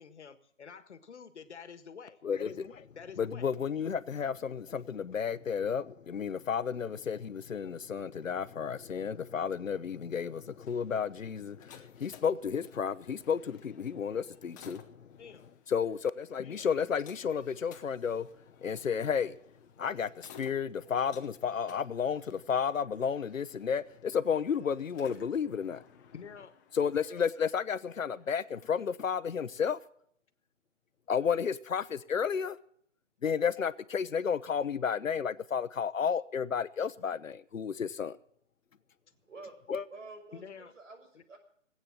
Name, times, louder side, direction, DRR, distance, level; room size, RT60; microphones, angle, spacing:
voice 1, 0.0-2.2 2.9-3.5 15.2-15.5 26.1-26.5 40.3-40.7 41.1-41.2, left 6 dB, 60° left, 1.7 m, -48 dB
voice 2, 2.2-2.9 3.2-15.2 15.7-18.3 18.6-19.4 19.8-25.8 26.7-29.8 31.1-32.6 33.2-38.1 39.7-39.8, left 7 dB, 85° left, 1.1 m, -32 dB
sound 1, 10.4-28.9, left 7 dB, 15° left, 0.9 m, -58 dB
voice 3, 39.9-41.4, right 3 dB, 75° right, 6.2 m, -49 dB
19.0 x 8.9 x 7.5 m
hypercardioid pair, 160°, 38 cm